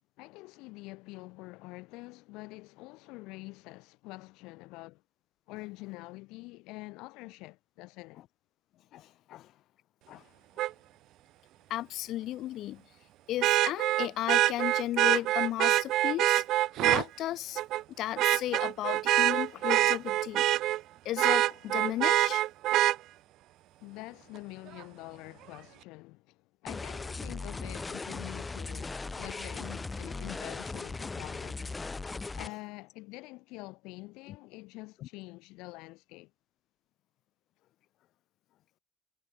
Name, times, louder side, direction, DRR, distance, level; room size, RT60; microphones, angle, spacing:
voice 1, 0.2-5.0 5.5-8.2 23.8-31.8 32.3-36.3, left 23 dB, 85° left, 3.3 m, -46 dB
voice 2, 8.9-9.5 10.1-10.2 11.7-12.8 13.3-16.4 16.8-17.6 18.0-20.4 21.0-22.4 32.4-32.5 35.0-35.1, left 14 dB, 60° left, 4.6 m, -35 dB
Vehicle horn car horn honking, 10.6-10.7 13.4-17.0 17.6-17.8 18.2-20.8 21.2-23.0 24.8-24.9, right 15 dB, 65° right, 0.3 m, -25 dB
sound 1, 26.7-32.5, left 3 dB, 15° left, 0.6 m, -38 dB
cardioid pair, 135°, 0 cm